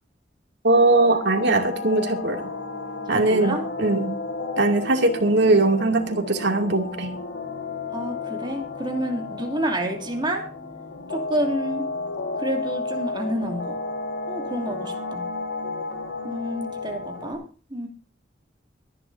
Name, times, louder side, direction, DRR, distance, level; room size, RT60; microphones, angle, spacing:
voice 1, 0.6-2.5 3.1-4.1 4.6-7.2, right 2 dB, 65° right, 4 dB, 2.6 m, -20 dB
sound 1, 0.7-17.3, left 3 dB, 75° left, 4.6 m, -32 dB
voice 2, 3.1-3.7 7.9-10.5 11.1-11.8 12.4-13.8 14.3-15.3 16.2-17.4 17.7-17.9, right 1 dB, 25° right, 2 dB, 2.8 m, -29 dB
23.5 x 10.5 x 2.7 m, 0.36 s
head